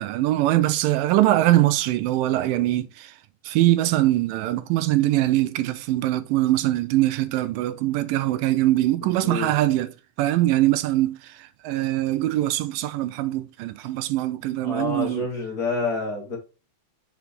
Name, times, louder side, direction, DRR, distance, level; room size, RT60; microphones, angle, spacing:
voice 1, 0.0-3.1 3.5-9.9 10.2-15.2, right 15 dB, 85° right, 2.2 m, -22 dB
voice 2, 9.0-9.5 14.6-16.4, left 3 dB, 50° left, 1.1 m, -28 dB
5.9 x 5.8 x 4.1 m
omnidirectional pair, 4.0 m